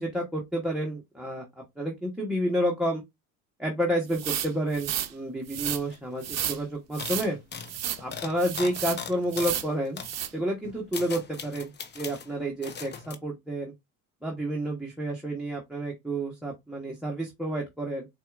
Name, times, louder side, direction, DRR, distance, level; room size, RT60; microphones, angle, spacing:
voice 1, 0.0-3.0 3.6-7.4 8.0-10.1 10.3-13.7 14.2-18.1, right 1 dB, ahead, 0.9 m, -30 dB
sound 1, 4.1-5.1 5.5-5.8 6.2-6.6 6.9-7.3 7.7-8.0 8.4-9.0 9.3-9.7 10.0-10.3, right 10 dB, 35° right, 0.6 m, -32 dB
sound 2, 5.9-6.0 6.2-6.5 7.0-9.6 10.0-10.2 10.6-12.3 12.6-13.2, left 6 dB, 25° left, 0.6 m, -39 dB
4.2 x 2.4 x 2.4 m
hypercardioid pair, 75°, 45 cm